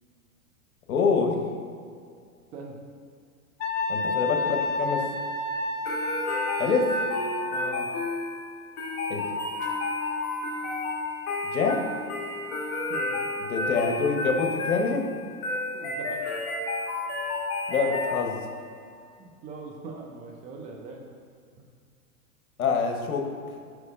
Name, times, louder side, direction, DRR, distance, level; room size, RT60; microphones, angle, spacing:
voice 1, 0.9-1.4 3.9-5.1 6.6-7.1 9.1-9.4 11.4-11.9 13.4-15.1 17.7-18.4 22.6-23.6, left 5 dB, 75° left, 4 dB, 1.1 m, -26 dB
Wind instrument woodwind instrument, 3.6-7.7, left 2 dB, 55° left, 0.7 m, -30 dB
sound 1, 5.8-18.6, left 2 dB, 35° left, 1.6 m, -31 dB
voice 2, 7.5-7.9 12.9-13.2 15.7-16.2 19.2-21.0, right 4 dB, 20° right, 0 dB, 0.4 m, -41 dB
5.1 x 4.4 x 5.1 m, 2.2 s
hypercardioid pair, 125°, 44 cm